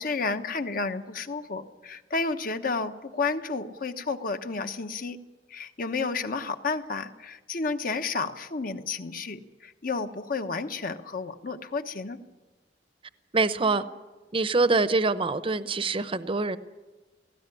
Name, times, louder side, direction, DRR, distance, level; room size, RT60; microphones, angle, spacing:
voice 1, 0.0-5.2 5.5-12.2, left 4 dB, 50° left, 8 dB, 1.1 m, -31 dB
voice 2, 13.3-13.8 14.3-16.6, right 3 dB, 30° right, 13 dB, 0.8 m, -24 dB
18.5 x 16.5 x 9.9 m, 1.2 s
head